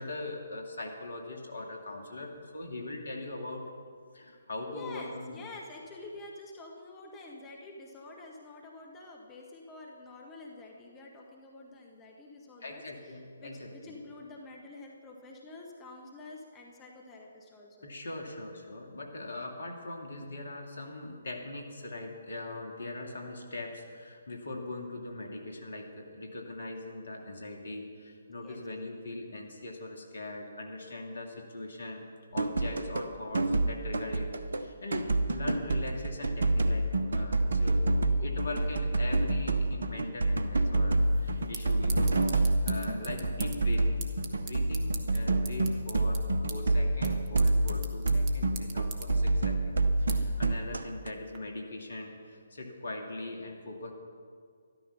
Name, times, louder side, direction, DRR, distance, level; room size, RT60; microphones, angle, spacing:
voice 1, 0.0-3.7 4.1-5.4 12.6-13.9 17.8-32.0 32.3-37.9 38.2-53.9, left 2 dB, 60° left, 2 dB, 2.1 m, -41 dB
voice 2, 4.7-17.9 28.4-28.6, left 2 dB, 15° left, -1 dB, 1.4 m, -48 dB
sound 1, 32.4-33.1 33.3-34.7 34.9-51.1, right 2 dB, 65° right, 0.8 m, -28 dB
sound 2, 40.9-51.4, right 6 dB, 30° right, 1.3 m, -46 dB
13.0 x 12.5 x 5.7 m, 2.1 s
figure-of-eight pair, 135°, 0 cm